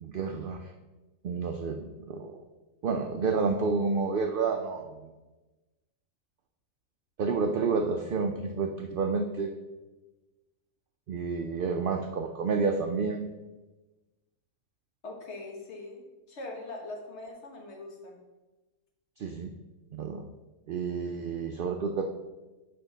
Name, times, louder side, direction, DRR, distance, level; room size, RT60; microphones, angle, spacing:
voice 1, 0.0-0.7 1.2-2.4 2.8-4.9 7.2-9.5 11.1-13.2 19.2-19.5 19.9-20.2 20.7-22.0, right 4 dB, 75° right, 4 dB, 0.5 m, -30 dB
voice 2, 15.0-16.0 16.3-18.2, left 2 dB, 55° left, 0 dB, 1.4 m, -41 dB
6.8 x 5.1 x 3.9 m, 1.1 s
omnidirectional pair, 1.4 m